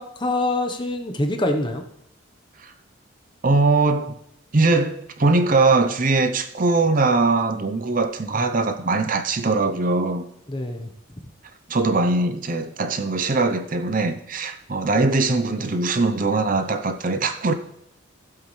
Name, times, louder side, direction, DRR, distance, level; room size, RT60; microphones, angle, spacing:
voice 1, 0.0-1.8 10.5-10.9, left 1 dB, 20° left, 0.9 m, -25 dB
voice 2, 3.4-4.2 4.5-10.2 11.7-17.5, right 3 dB, 40° right, 0.6 m, -21 dB
15.5 x 8.2 x 3.2 m
head